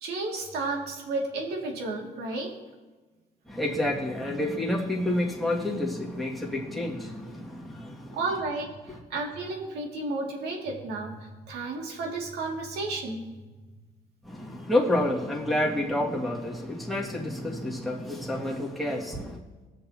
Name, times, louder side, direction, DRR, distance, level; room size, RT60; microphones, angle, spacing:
voice 1, 0.0-2.5 8.1-13.2, right 3 dB, 75° right, 0 dB, 2.3 m, -32 dB
voice 2, 3.5-8.2 14.2-19.4, left 1 dB, ahead, -4 dB, 2.1 m, -29 dB
20.5 x 6.9 x 2.9 m, 1.2 s
cardioid pair, 110°, 17 cm